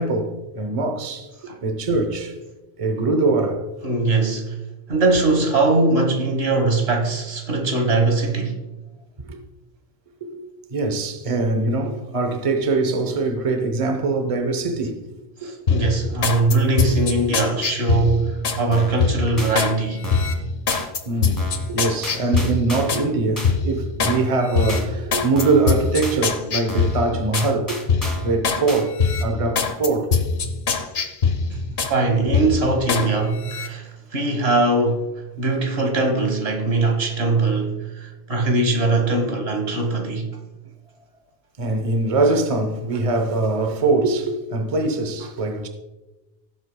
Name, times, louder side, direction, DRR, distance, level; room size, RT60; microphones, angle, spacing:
voice 1, 0.0-1.3 1.6-2.4 2.8-3.7 9.2-9.4 10.2-15.0 15.4-15.5 21.1-27.8 28.2-28.9 29.2-30.2 41.6-45.7, right 3 dB, 35° right, 0.9 m, -22 dB
voice 2, 3.8-4.5 4.9-8.6 15.4-20.1 31.9-35.1 35.4-40.4, right 3 dB, 80° right, 1.7 m, -21 dB
sound 1, 15.7-18.6 19.0-19.7 20.1-23.1 23.4-24.2 24.5-27.5 27.9-28.6 29.0-32.0 32.3-33.1 33.4-33.7, left 5 dB, 75° left, 1.1 m, -23 dB
sound 2, 18.7-19.0 19.4-19.5 20.0-20.4 20.7-20.9 21.4-21.7 22.0-23.0 23.4-23.5 24.0-24.4 24.7-24.9 25.4-25.7 26.0-26.2 26.7-27.0 27.3-28.3 28.7-28.8, right 1 dB, 20° left, 1.6 m, -32 dB
17.0 x 7.8 x 2.2 m
omnidirectional pair, 1.0 m